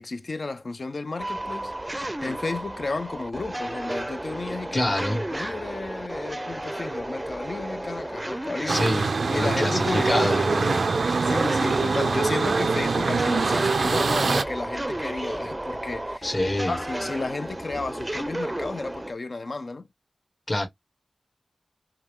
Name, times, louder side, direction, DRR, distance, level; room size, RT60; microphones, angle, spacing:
voice 1, 0.0-2.0 2.2-4.9 5.3-8.9 9.2-10.8 11.2-16.3 16.7-19.9, left 3 dB, 65° left, 0.5 m, -33 dB
sound 1, 1.2-19.1, right 1 dB, 20° right, 0.4 m, -33 dB
voice 2, 4.7-5.2 8.7-10.8 16.2-16.8 20.5-20.7, left 1 dB, 50° left, 2.2 m, -26 dB
sound 2, 8.7-14.4, right 4 dB, 90° right, 0.3 m, -24 dB
4.8 x 2.2 x 3.3 m
wide cardioid pair, 50°, 0 cm